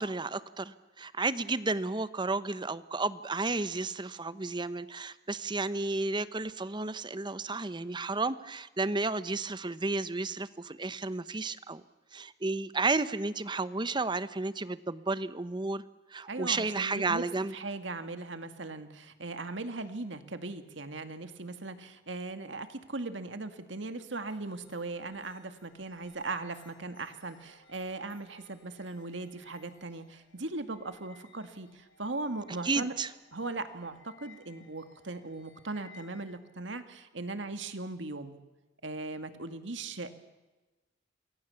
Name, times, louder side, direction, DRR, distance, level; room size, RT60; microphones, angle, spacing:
voice 1, 0.0-11.8 12.1-15.8 16.1-17.5 32.6-33.1, right 3 dB, 25° right, 14 dB, 0.9 m, -32 dB
voice 2, 16.3-17.2 17.5-32.9 33.3-38.4 38.8-40.1, right 3 dB, 70° right, 9 dB, 2.1 m, -39 dB
sound 1, 24.3-36.4, left 4 dB, 75° left, 5.3 m, -61 dB
28.5 x 22.0 x 7.1 m, 1.1 s
head